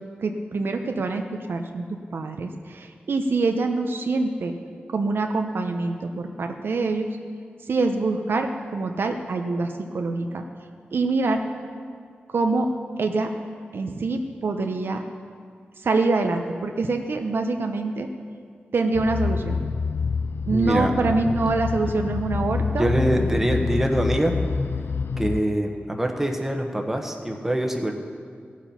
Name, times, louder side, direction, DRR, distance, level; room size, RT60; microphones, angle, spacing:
voice 1, 0.2-1.9 2.1-4.5 4.9-7.1 7.7-10.4 10.9-11.4 12.3-12.7 13.0-13.3 13.7-15.0 15.8-18.1 18.7-19.6 20.5-22.9, right 3 dB, 70° right, 5 dB, 0.7 m, -25 dB
sound 1, 18.9-25.4, left 5 dB, 65° left, 0.5 m, -27 dB
voice 2, 20.5-20.9 22.8-24.3 25.2-27.9, right 1 dB, 10° right, 3 dB, 1.2 m, -24 dB
15.5 x 7.3 x 5.6 m, 2.1 s
wide cardioid pair, 90°, 4 cm